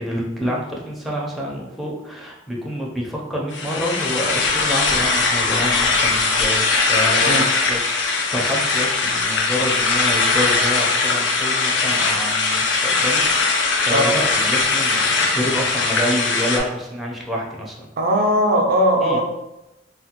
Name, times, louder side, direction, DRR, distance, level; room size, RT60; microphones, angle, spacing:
voice 1, 0.0-17.8 19.0-19.2, equal, ahead, -3 dB, 0.5 m, -28 dB
sound 1, 3.5-16.6, left 3 dB, 70° left, 0.4 m, -20 dB
voice 2, 18.0-19.2, equal, 55° right, 2 dB, 0.4 m, -18 dB
3.3 x 2.1 x 2.8 m, 0.93 s
head